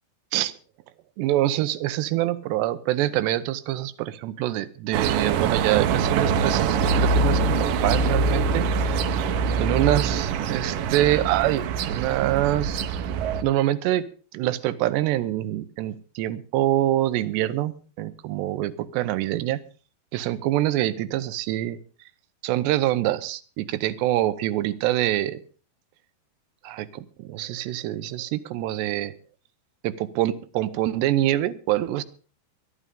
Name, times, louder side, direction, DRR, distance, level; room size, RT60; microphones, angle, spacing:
voice 1, 1.2-9.0 9.5-12.8 13.4-14.1 14.3-19.6 20.1-21.8 22.4-25.4 26.6-29.1 29.8-32.0, right 14 dB, 90° right, 13 dB, 3.0 m, -25 dB
sound 1, 4.9-13.4, right 4 dB, 70° right, 2.2 m, -24 dB
22.5 x 11.5 x 3.7 m, 0.38 s
omnidirectional pair, 4.8 m